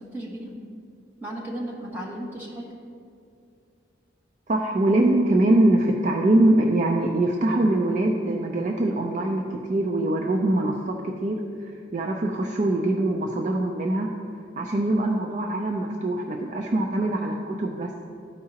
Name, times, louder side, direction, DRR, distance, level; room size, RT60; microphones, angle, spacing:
voice 1, 0.1-0.5 1.2-2.7 14.6-14.7, right 1 dB, 10° right, -6 dB, 1.5 m, -35 dB
voice 2, 4.5-11.4 11.9-14.1 14.6-17.9, right 1 dB, 40° right, 1 dB, 0.4 m, -23 dB
13.0 x 4.7 x 2.8 m, 2.4 s
head